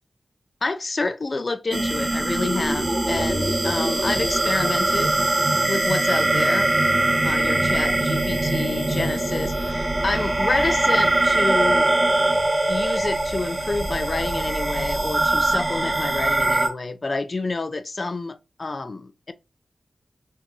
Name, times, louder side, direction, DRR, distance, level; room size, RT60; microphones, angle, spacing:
voice 1, 0.6-5.2 5.7-6.7 7.2-11.9 12.7-19.3, left 3 dB, 45° left, 0.3 m, -28 dB
sound 1, 1.7-16.7, right 2 dB, 25° right, 0.5 m, -22 dB
2.7 x 2.0 x 2.3 m
wide cardioid pair, 80°, 0 cm